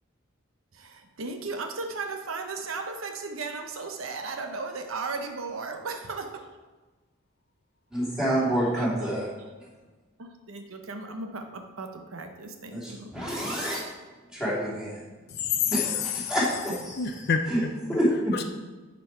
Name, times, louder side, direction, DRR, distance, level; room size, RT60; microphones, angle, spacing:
voice 1, 0.7-6.5 8.7-9.3 10.2-13.3, right 3 dB, 70° right, 5 dB, 0.9 m, -36 dB
voice 2, 7.9-9.3 12.7-13.8 14.3-15.0 15.7-17.0 17.5-17.6 17.9-18.3, equal, 5° right, -8 dB, 2.7 m, -27 dB
voice 3, 15.3-16.4 16.9-17.7 18.3-18.4, left 7 dB, 50° left, 7 dB, 0.5 m, -28 dB
11.0 x 5.5 x 4.4 m, 1.3 s
head